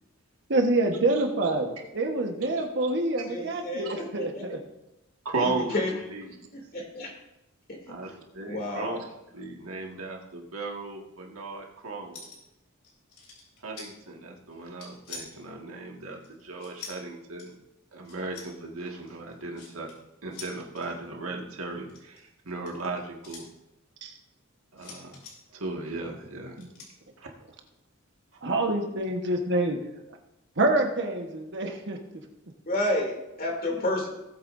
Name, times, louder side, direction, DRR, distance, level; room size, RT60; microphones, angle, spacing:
voice 1, 0.5-4.6 24.0-24.1 26.6-26.7 28.4-29.8 30.6-32.0, right 2 dB, 55° right, 3 dB, 1.3 m, -26 dB
voice 2, 3.2-4.6 5.4-5.9 6.5-7.1 7.7-7.8 8.5-9.0 32.7-34.1, left 1 dB, 45° left, 0 dB, 2.8 m, -30 dB
voice 3, 5.3-6.5 7.9-9.0 9.3-12.3 13.6-17.6 17.9-19.9 20.2-23.5 24.7-25.2 25.5-26.6 27.2-27.3, right 3 dB, 85° right, 0 dB, 1.9 m, -36 dB
sound 1, 12.1-12.5 12.8-13.9 14.5-15.5 16.2-17.0 17.4-17.5 18.0-18.5 19.1-19.9 20.3-20.9 21.8-23.4 24.8-25.3 26.6-26.9, left 5 dB, 85° left, 3.8 m, -44 dB
18.5 x 8.4 x 2.7 m, 0.92 s
head